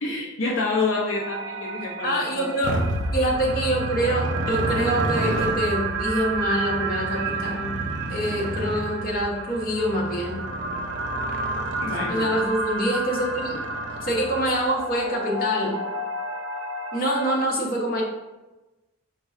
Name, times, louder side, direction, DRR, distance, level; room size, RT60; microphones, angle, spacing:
voice 1, 0.0-2.5 11.8-12.3 13.5-13.6 15.6-15.8, left 3 dB, 70° left, -2 dB, 0.5 m, -28 dB
sound 1, 1.1-17.4, right 3 dB, 80° right, 0.5 m, -31 dB
voice 2, 2.0-2.8 3.1-7.8 8.1-10.5 12.1-13.5 14.0-15.8 16.9-18.0, equal, 50° left, -2 dB, 1.0 m, -25 dB
Motorcycle, 2.6-14.7, right 1 dB, 40° right, 0.7 m, -32 dB
4.4 x 2.2 x 4.7 m, 1.1 s
head